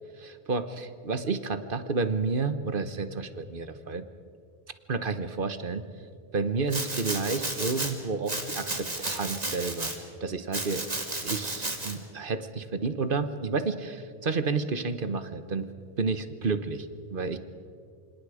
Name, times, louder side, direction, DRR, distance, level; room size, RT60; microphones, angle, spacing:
voice 1, 0.2-4.0 4.9-5.9 6.3-9.9 10.2-10.9 11.2-15.7 16.0-17.4, right 4 dB, 55° right, 11 dB, 1.3 m, -30 dB
Domestic sounds home sounds, 6.7-7.9 8.3-10.0 10.5-11.9, right 2 dB, 35° right, 2.5 m, -33 dB
28.0 x 26.0 x 5.0 m, 2.3 s
omnidirectional pair, 1.1 m